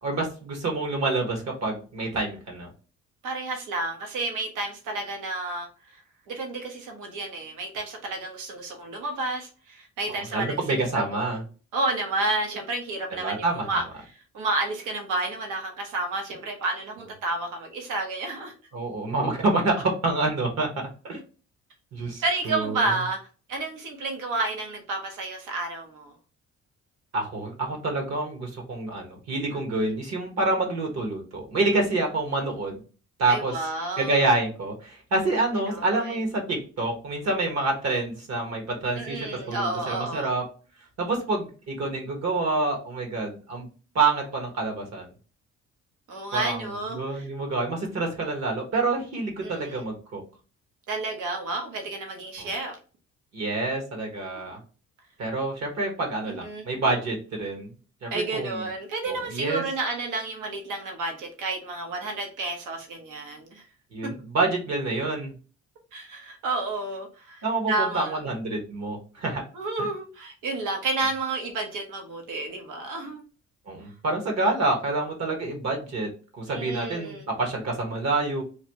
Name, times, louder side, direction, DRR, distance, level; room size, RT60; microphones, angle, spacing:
voice 1, 0.0-2.7 10.1-11.4 13.1-13.7 18.7-20.7 21.0-21.2 21.9-22.9 27.1-32.8 33.2-33.6 34.0-40.4 41.0-43.7 43.9-45.1 46.3-46.7 46.9-50.2 52.4-52.5 53.3-54.6 55.2-57.7 58.0-58.7 59.1-59.6 63.9-65.3 67.4-69.4 69.8-69.9 73.7-78.4, right 2 dB, 60° right, 1.3 m, -27 dB
voice 2, 3.2-6.0 6.3-11.4 11.7-13.8 14.1-18.5 22.2-23.2 23.5-26.1 29.8-29.9 33.3-34.3 35.7-36.2 38.9-40.3 46.1-47.3 49.4-49.8 50.9-52.8 56.3-56.7 58.1-63.6 65.9-68.2 69.5-73.2 76.5-77.2, right 2 dB, 85° right, 1.0 m, -31 dB
3.1 x 2.6 x 2.9 m
cardioid pair, 90°, 30 cm